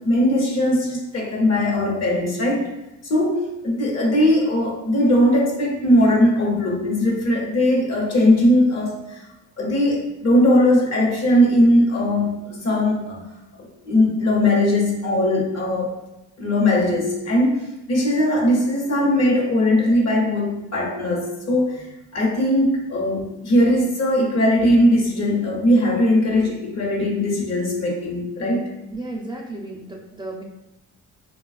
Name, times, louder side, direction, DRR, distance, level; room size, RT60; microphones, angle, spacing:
voice 1, 0.0-2.7 3.1-9.2 9.6-13.3 13.6-15.9 16.4-17.6 17.9-28.7, left 1 dB, 60° left, -1 dB, 0.9 m, -19 dB
voice 2, 28.9-30.4, right 2 dB, 15° right, -2 dB, 0.4 m, -33 dB
3.4 x 2.3 x 2.4 m, 0.94 s
cardioid pair, 90°, 30 cm